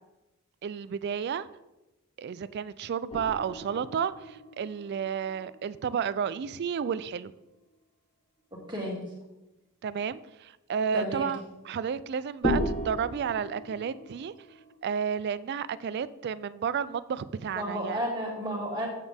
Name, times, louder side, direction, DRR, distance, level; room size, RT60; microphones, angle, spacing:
voice 1, 0.6-1.5 2.2-7.3 9.8-11.4 11.7-14.3 14.8-18.0, right 7 dB, 50° right, 17 dB, 0.3 m, -31 dB
sound 1, 3.1-6.6 6.9-7.0 12.4-14.8, equal, 25° left, 1.0 m, -35 dB
voice 2, 8.5-9.0 10.9-11.3 17.5-18.9, equal, 20° right, -3 dB, 2.0 m, -32 dB
8.1 x 7.1 x 3.5 m, 0.99 s
head